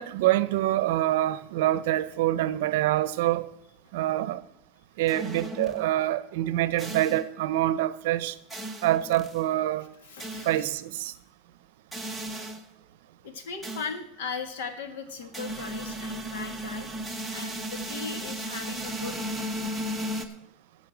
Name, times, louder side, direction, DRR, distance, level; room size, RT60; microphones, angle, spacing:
voice 1, 0.0-3.5 3.9-4.4 5.0-8.3 8.8-9.9 10.5-11.1, right 14 dB, 65° right, 0.7 m, -26 dB
sound 1, 5.1-6.0 6.8-7.3 8.5-9.4 10.2-10.6 11.9-12.7 13.6-13.9 15.3-20.3, right 1 dB, ahead, 0.8 m, -35 dB
voice 2, 10.0-10.7 13.2-16.9 17.3-19.3, left 5 dB, 85° left, 1.9 m, -38 dB
14.0 x 5.5 x 7.3 m
supercardioid pair, 180°, 0 cm